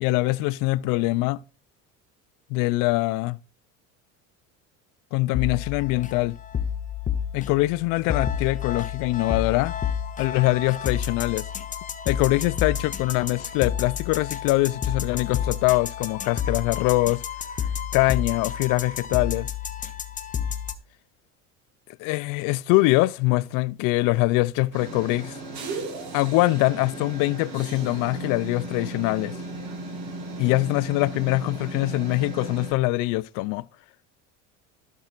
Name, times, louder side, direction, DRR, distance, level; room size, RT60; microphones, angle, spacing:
voice 1, 0.0-1.4 2.5-3.4 5.1-6.4 7.3-9.7 10.2-11.5 12.1-17.2 17.9-19.5 22.0-25.4 26.1-29.4 30.4-33.7, left 20 dB, 70° left, 0.5 m, -23 dB
sound 1, 5.3-20.7, left 8 dB, 25° left, 0.7 m, -30 dB
sound 2, 24.7-32.7, right 2 dB, 50° right, 3.2 m, -36 dB
12.5 x 7.5 x 2.4 m
cardioid pair, 130°, 34 cm